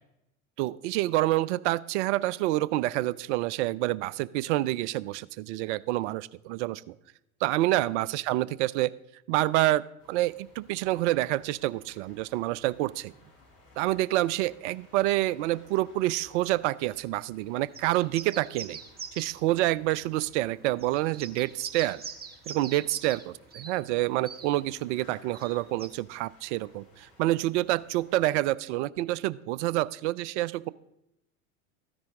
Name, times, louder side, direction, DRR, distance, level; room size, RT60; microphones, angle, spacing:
voice 1, 0.6-6.9 7.4-8.9 9.3-13.1 13.8-18.8 19.2-22.0 22.5-23.2 23.5-30.7, right 16 dB, 55° right, 21 dB, 0.5 m, -27 dB
sound 1, 10.0-28.3, left 2 dB, 55° left, 5.1 m, -59 dB
sound 2, 17.7-19.4 20.2-20.3 20.8-23.3 23.5-23.8 24.2-24.5 25.3-25.9, right 5 dB, 20° right, 1.1 m, -42 dB
13.5 x 10.0 x 3.6 m, 0.84 s
hypercardioid pair, 80°, 42 cm